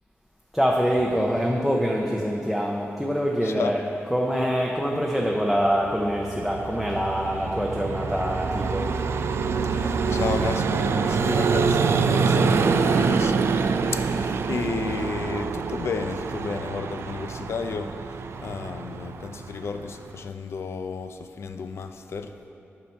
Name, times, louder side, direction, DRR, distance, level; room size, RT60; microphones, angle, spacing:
voice 1, 0.5-8.9, equal, ahead, -1 dB, 0.6 m, -25 dB
voice 2, 3.4-3.7 9.6-13.4 13.9-22.4, left 5 dB, 70° left, 8 dB, 0.5 m, -33 dB
Vehicle, 5.5-20.2, right 5 dB, 65° right, 0.3 m, -25 dB
10.5 x 5.7 x 4.4 m, 2.8 s
wide cardioid pair, 150°, 5 cm